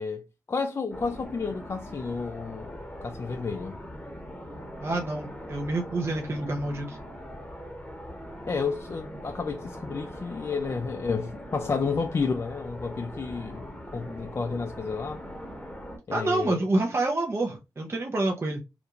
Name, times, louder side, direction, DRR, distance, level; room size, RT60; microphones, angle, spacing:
voice 1, 0.0-3.8 8.5-15.2 16.1-16.6, left 4 dB, 35° left, 0.3 m, -31 dB
sound 1, 0.9-16.0, equal, 15° left, 0.9 m, -41 dB
voice 2, 4.8-7.0 16.1-18.6, right 2 dB, 35° right, 0.6 m, -28 dB
2.4 x 2.2 x 2.9 m
supercardioid pair, 40°, 7 cm